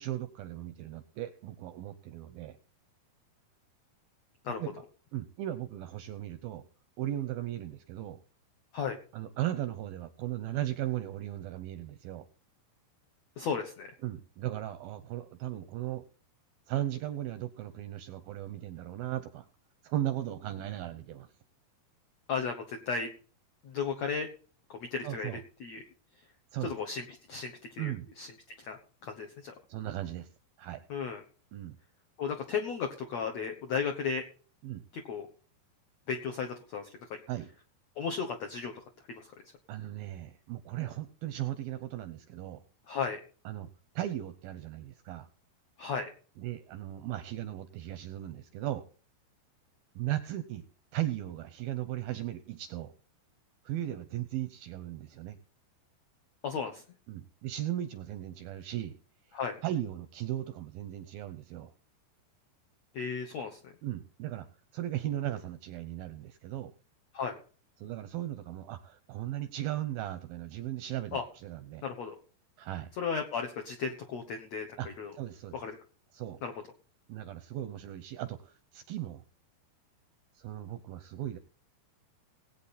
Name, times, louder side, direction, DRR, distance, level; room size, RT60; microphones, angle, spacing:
voice 1, 0.0-2.6 4.6-4.8 5.1-6.6 7.0-8.2 9.1-12.3 14.0-16.1 16.7-19.5 19.8-21.3 25.0-25.4 26.5-26.7 27.8-28.1 29.7-30.3 30.6-30.8 31.5-31.8 34.6-34.8 37.3-37.5 39.7-42.6 43.5-43.7 44.0-45.3 46.4-48.9 50.0-50.7 50.9-52.9 53.7-55.4 57.1-59.0 59.3-61.7 63.8-64.5 64.7-66.7 67.8-71.8 72.6-72.9 74.8-75.6 76.1-76.4 77.1-79.2 80.4-81.4, right 13 dB, 80° right, 11 dB, 2.1 m, -37 dB
voice 2, 13.4-13.9 22.3-23.1 23.6-24.3 24.7-25.3 25.6-25.8 26.6-28.3 28.6-29.5 30.9-31.2 32.2-34.2 34.9-35.3 36.1-36.9 38.0-39.3 42.9-43.2 45.8-46.1 56.4-56.8 59.3-59.6 62.9-63.7 67.1-67.4 71.1-71.2 71.8-72.1 73.0-75.1 75.5-75.8 76.4-76.5, left 6 dB, 75° left, 3 dB, 1.5 m, -35 dB
18.5 x 8.6 x 4.2 m, 0.40 s
omnidirectional pair, 4.9 m